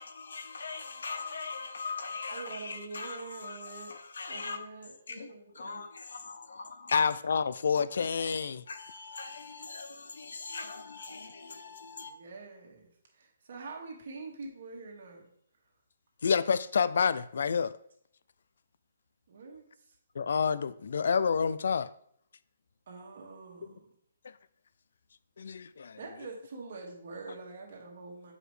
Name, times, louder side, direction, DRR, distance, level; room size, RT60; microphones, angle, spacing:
voice 1, 0.0-4.6 5.1-5.2 5.5-7.1 8.7-12.1, left 4 dB, 85° left, 7 dB, 0.8 m, -41 dB
voice 2, 2.3-3.9 4.3-5.8 12.0-15.3 19.3-20.0 22.9-23.9 25.9-28.3, right 3 dB, 45° right, -1 dB, 1.7 m, -45 dB
voice 3, 6.9-8.6 16.2-17.8 20.2-21.9 25.4-26.0, left 6 dB, 60° left, 15 dB, 0.3 m, -28 dB
7.9 x 4.9 x 3.2 m, 0.66 s
hypercardioid pair, 175°, 0 cm